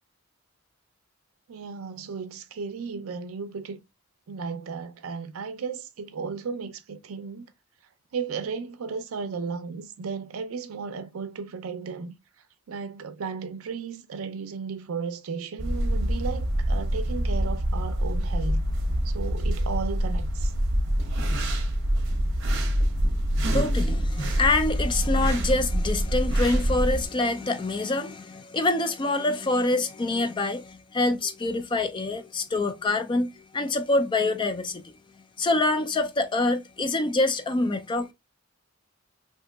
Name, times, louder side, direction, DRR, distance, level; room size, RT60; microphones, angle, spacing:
voice 1, 1.5-3.8 4.3-7.5 8.1-12.2 12.7-18.6 19.0-20.5, right 5 dB, 85° right, 0.5 m, -34 dB
sound 1, 15.6-27.1, equal, 60° right, 0.7 m, -25 dB
voice 2, 23.5-34.9 35.4-38.1, left 2 dB, 20° left, 0.3 m, -26 dB
3.7 x 2.7 x 2.2 m
head